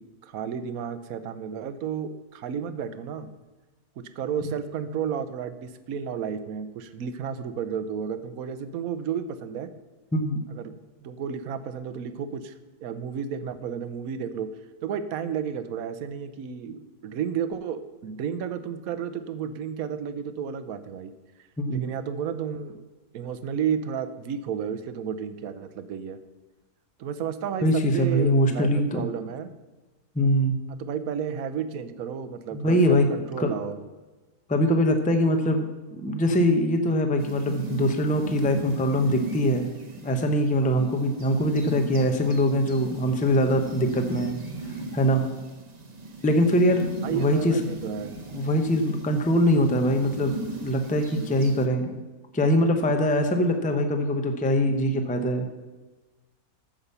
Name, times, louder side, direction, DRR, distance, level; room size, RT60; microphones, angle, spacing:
voice 1, 0.0-3.3 4.2-9.7 10.5-12.5 12.8-14.5 14.8-21.1 21.7-22.8 23.1-26.2 27.0-29.5 30.7-33.8 40.7-40.9 47.0-48.2, right 7 dB, 70° right, 11 dB, 1.1 m, -32 dB
voice 2, 27.6-29.0 30.1-30.5 32.5-33.1 33.4-33.5 34.5-35.7 35.9-39.7 40.0-44.3 44.9-45.2 46.2-47.6 48.3-50.3 50.6-52.0 52.3-55.5, equal, 10° left, 6 dB, 0.6 m, -23 dB
sound 1, 37.2-51.7, right 2 dB, 35° right, 0.8 m, -37 dB
8.9 x 7.2 x 6.8 m, 1.2 s
omnidirectional pair, 1.6 m